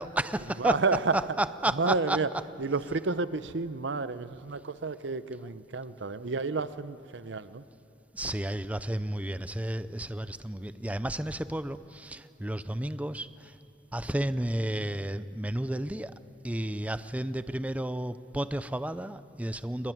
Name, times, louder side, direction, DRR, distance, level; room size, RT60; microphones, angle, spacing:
voice 1, 0.0-0.8 1.1-2.2 8.1-13.5 13.9-16.1 16.4-19.9, right 1 dB, 10° right, 13 dB, 0.5 m, -32 dB
voice 2, 0.6-1.2 1.8-2.3 2.6-7.6, right 3 dB, 90° right, 14 dB, 0.8 m, -30 dB
23.0 x 21.0 x 9.3 m, 2.6 s
head